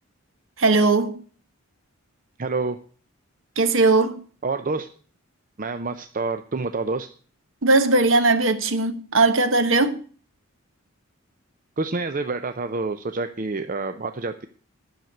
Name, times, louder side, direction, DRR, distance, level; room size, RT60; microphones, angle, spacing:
voice 1, 0.6-1.2 3.6-4.2 7.6-10.0, right 3 dB, 60° right, 1.3 m, -19 dB
voice 2, 2.4-2.8 4.4-4.9 5.6-7.1 11.8-14.5, right 3 dB, 35° right, 0.6 m, -27 dB
10.5 x 6.6 x 9.2 m
head